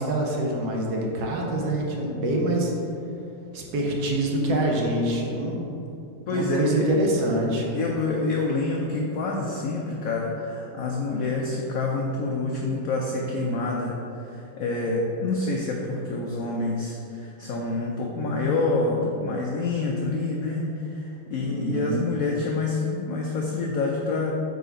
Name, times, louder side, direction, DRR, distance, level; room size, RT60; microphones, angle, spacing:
voice 1, 0.0-2.7 3.5-5.6 6.3-7.7 21.4-22.0, right 1 dB, 60° right, -1 dB, 1.2 m, -25 dB
voice 2, 6.3-6.9 7.7-24.3, left 3 dB, 85° left, -1 dB, 0.7 m, -27 dB
4.8 x 3.9 x 5.0 m, 2.7 s
omnidirectional pair, 2.1 m